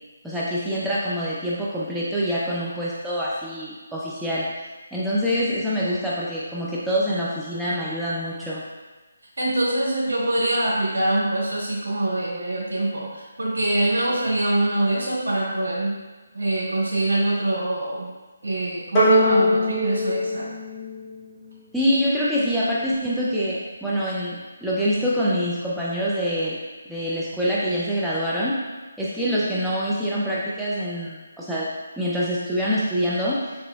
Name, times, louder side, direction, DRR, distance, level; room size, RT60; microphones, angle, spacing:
voice 1, 0.2-4.4 4.9-8.6 21.7-26.6 26.9-28.6 29.0-31.7 32.0-33.4, equal, 5° right, -9 dB, 0.4 m, -25 dB
voice 2, 9.4-16.0 16.3-18.1 18.4-20.5, right 1 dB, 65° right, -6 dB, 1.4 m, -24 dB
sound 1, 19.0-21.5, left 1 dB, 20° left, 0.7 m, -21 dB
3.6 x 2.9 x 2.3 m, 1.2 s
figure-of-eight pair, 150°, 0 cm